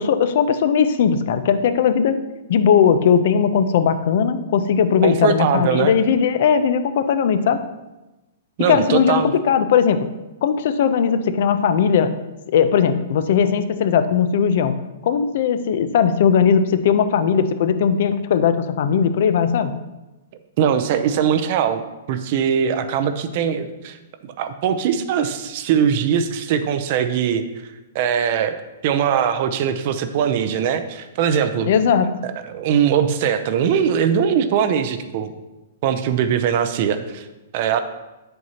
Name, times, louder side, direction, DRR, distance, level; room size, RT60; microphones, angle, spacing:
voice 1, 0.0-2.2 2.5-7.6 8.7-10.1 10.4-12.1 12.5-14.8 15.0-19.7 31.7-32.1, left 7 dB, 45° left, 11 dB, 0.5 m, -18 dB
voice 2, 5.0-5.9 8.6-9.3 20.6-21.8 22.1-24.0 24.2-27.4 27.9-28.5 28.8-31.7 32.2-35.3 35.8-37.3 37.5-37.8, right 8 dB, 35° right, 10 dB, 0.6 m, -21 dB
9.5 x 7.7 x 2.9 m, 1.0 s
hypercardioid pair, 175°, 0 cm